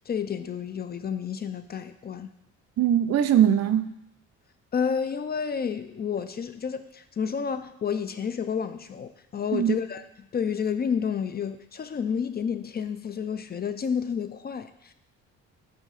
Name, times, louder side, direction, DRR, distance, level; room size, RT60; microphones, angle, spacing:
voice 1, 0.1-2.3 4.7-14.9, left 7 dB, 35° left, 11 dB, 0.4 m, -30 dB
voice 2, 2.8-3.9 9.5-9.7, right 10 dB, 55° right, 10 dB, 0.5 m, -21 dB
8.1 x 2.7 x 5.6 m, 0.83 s
cardioid pair, 90°, 30 cm